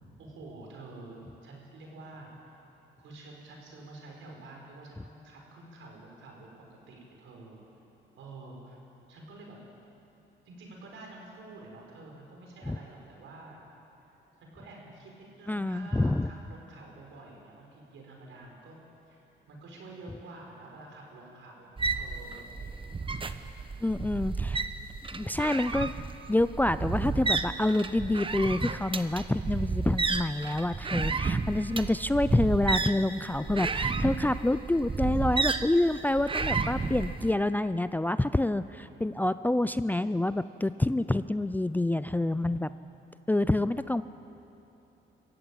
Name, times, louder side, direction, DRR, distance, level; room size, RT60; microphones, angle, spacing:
voice 1, 0.2-2.5 3.0-7.6 8.1-8.8 9.1-9.6 10.4-13.6 14.0-14.1 14.4-18.8 19.1-19.2 19.5-22.5 22.8-23.3 30.8-31.7 38.9-39.3 42.1-42.6, right 2 dB, 75° right, 0 dB, 5.7 m, -48 dB
voice 2, 15.5-16.3 23.8-24.6 25.1-25.9 26.3-42.7 43.3-44.0, left 1 dB, 10° left, 13 dB, 0.5 m, -27 dB
sound 1, 21.8-37.3, right 4 dB, 25° right, 1.0 m, -31 dB
24.5 x 14.5 x 8.9 m, 2.9 s
cardioid pair, 90°, 20 cm